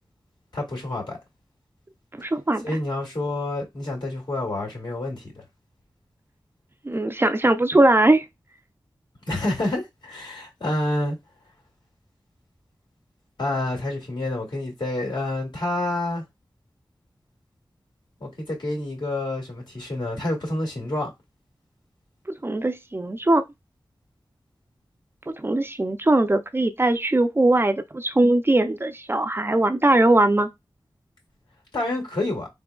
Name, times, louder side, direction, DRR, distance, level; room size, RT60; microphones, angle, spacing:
voice 1, 0.5-1.2 2.6-5.4 9.3-11.2 13.4-16.2 18.2-21.1 31.7-32.5, left 1 dB, 70° left, 2.2 m, -28 dB
voice 2, 2.1-2.6 6.8-8.2 22.4-23.5 25.3-30.5, right 2 dB, 25° right, 0.4 m, -20 dB
3.8 x 3.7 x 2.3 m
wide cardioid pair, 65°, 8 cm